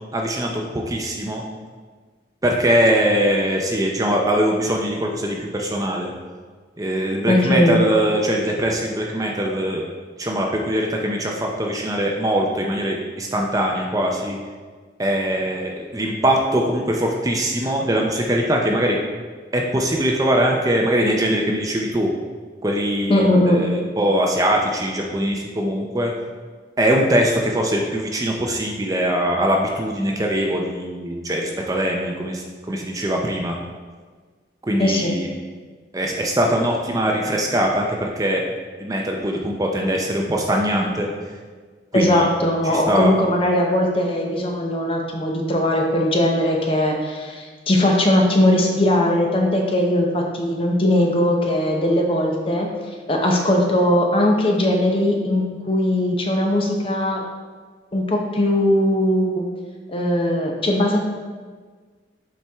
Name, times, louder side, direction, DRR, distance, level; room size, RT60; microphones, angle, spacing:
voice 1, 0.1-1.4 2.4-6.1 6.8-9.8 10.2-14.4 15.0-19.0 19.5-22.1 22.6-26.1 26.8-33.6 34.6-35.3 35.9-38.4 38.8-41.1 41.9-42.3 42.7-43.2, equal, 20° right, 0 dB, 0.5 m, -22 dB
voice 2, 7.3-7.8 23.1-23.6 34.8-35.2 41.9-52.7 53.1-57.2 57.9-59.5 59.9-61.0, left 1 dB, 30° left, 1 dB, 0.8 m, -19 dB
7.3 x 4.4 x 3.5 m, 1.5 s
head